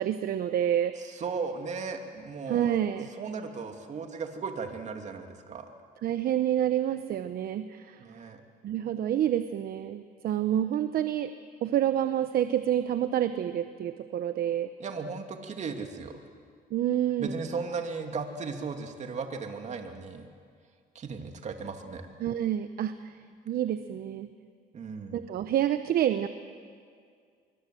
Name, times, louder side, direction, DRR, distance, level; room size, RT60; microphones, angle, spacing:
voice 1, 0.0-0.9 2.5-3.1 6.0-8.0 8.6-11.3 11.6-14.7 16.7-17.4 22.2-23.2 23.5-24.3 25.1-26.3, right 11 dB, 60° right, 10 dB, 0.9 m, -28 dB
voice 2, 1.0-2.8 3.2-5.6 8.0-8.4 14.8-16.2 17.2-20.3 20.9-22.0 24.7-25.2, right 5 dB, 45° right, 5 dB, 2.7 m, -36 dB
26.0 x 23.5 x 7.8 m, 2.1 s
cardioid pair, 110°, 17 cm